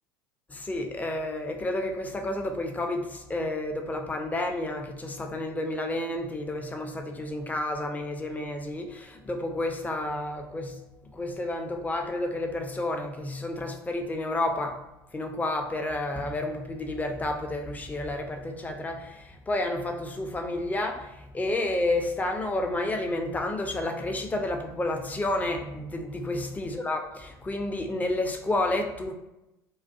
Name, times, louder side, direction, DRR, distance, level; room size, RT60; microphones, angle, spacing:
voice 1, 0.5-10.8 11.1-14.8 15.1-29.1, left 2 dB, 15° left, 4 dB, 0.4 m, -30 dB
2.4 x 2.2 x 2.5 m, 0.94 s
hypercardioid pair, 70°, 12 cm